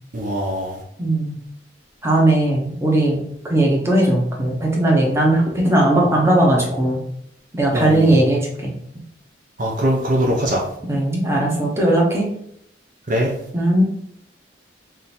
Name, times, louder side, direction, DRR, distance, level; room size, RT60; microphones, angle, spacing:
voice 1, 0.1-0.8 7.7-8.2 9.6-10.7 13.1-13.4, equal, 45° right, -1 dB, 0.6 m, -21 dB
voice 2, 1.0-1.3 2.0-3.2 3.4-7.0 7.5-8.7 10.9-12.3 13.5-13.8, right 1 dB, 15° right, -2 dB, 0.8 m, -18 dB
3.7 x 2.6 x 4.2 m, 0.71 s
head